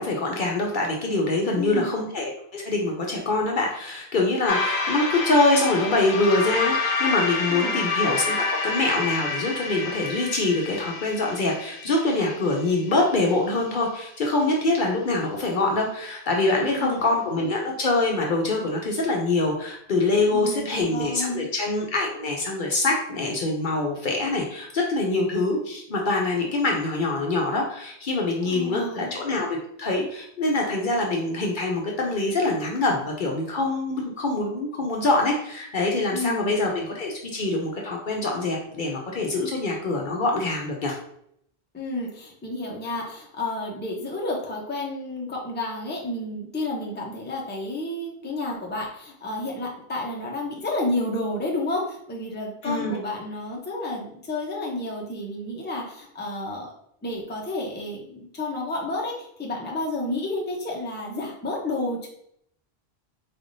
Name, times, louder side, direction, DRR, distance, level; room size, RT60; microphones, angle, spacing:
voice 1, 0.0-41.0 52.6-53.0, left 2 dB, 55° left, 0 dB, 0.7 m, -24 dB
voice 2, 1.5-1.9 7.5-7.8 16.6-17.0 20.3-21.5 28.4-29.2 36.1-36.6 41.7-56.7 57.0-62.1, left 2 dB, 10° left, -2 dB, 0.6 m, -31 dB
sound 1, 4.5-12.9, left 4 dB, 80° left, 0.9 m, -28 dB
4.1 x 3.4 x 2.6 m, 0.71 s
omnidirectional pair, 1.1 m